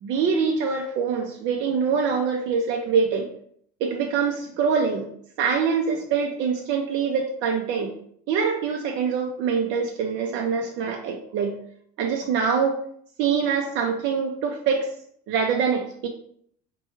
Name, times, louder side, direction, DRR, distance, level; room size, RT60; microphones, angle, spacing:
voice 1, 0.0-3.3 3.8-5.1 5.4-7.9 8.3-11.5 12.0-12.8 13.2-14.9 15.3-16.1, right 6 dB, 65° right, 2 dB, 0.5 m, -24 dB
4.3 x 2.2 x 3.0 m, 0.65 s
cardioid pair, 120°, 20 cm